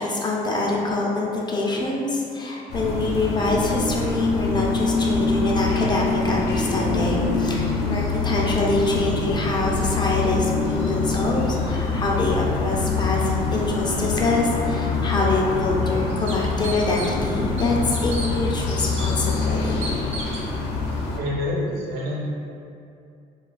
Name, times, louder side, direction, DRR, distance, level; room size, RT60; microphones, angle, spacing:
voice 1, 0.0-19.9, left 2 dB, 25° left, -2 dB, 0.4 m, -25 dB
sound 1, 2.7-21.2, left 3 dB, 80° left, 0.5 m, -25 dB
sound 2, 15.8-15.9 16.3-17.3 17.6-18.3 19.0-19.1 19.8-20.5, right 3 dB, 40° right, 0.5 m, -34 dB
voice 2, 21.1-22.2, left 1 dB, 70° right, -4 dB, 0.8 m, -27 dB
2.3 x 2.3 x 3.9 m, 2.5 s
cardioid pair, 110°, 17 cm